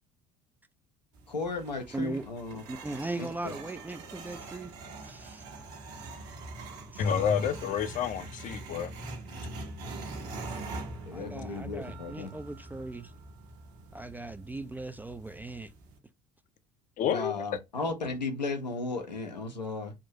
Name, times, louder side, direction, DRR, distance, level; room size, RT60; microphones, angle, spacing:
sound 1, 1.1-16.0, right 2 dB, 55° right, 1.1 m, -43 dB
voice 1, 1.3-2.6 3.2-3.5 11.1-12.3 17.1-19.9, left 3 dB, 85° left, 0.8 m, -35 dB
voice 2, 1.9-2.2 2.7-4.7 5.0-5.4 6.9-7.0 11.1-13.1 13.9-15.7, right 2 dB, 10° right, 0.4 m, -38 dB
voice 3, 7.0-8.9 17.0-17.3, left 8 dB, 40° left, 0.6 m, -29 dB
3.7 x 2.6 x 4.1 m
figure-of-eight pair, 60°, 21 cm